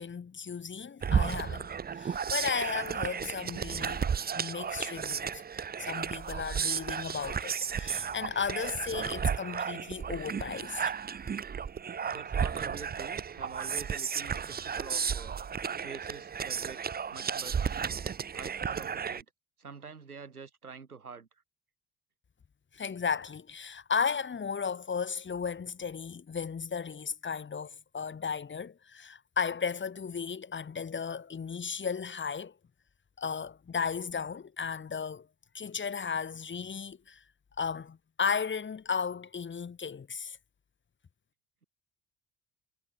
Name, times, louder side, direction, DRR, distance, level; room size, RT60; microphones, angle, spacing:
voice 1, 0.0-1.7 2.0-4.1 4.3-5.4 5.8-10.9 22.7-32.5 33.2-35.3 35.5-37.2 37.6-40.4, left 6 dB, 25° left, 1.4 m, -35 dB
sound 1, 1.0-19.2, right 7 dB, 20° right, 0.7 m, -33 dB
voice 2, 12.0-15.4 15.8-16.8 17.1-17.8 18.3-19.3 19.6-21.3, right 5 dB, 85° right, 2.9 m, -46 dB
figure-of-eight pair, 45°, 43 cm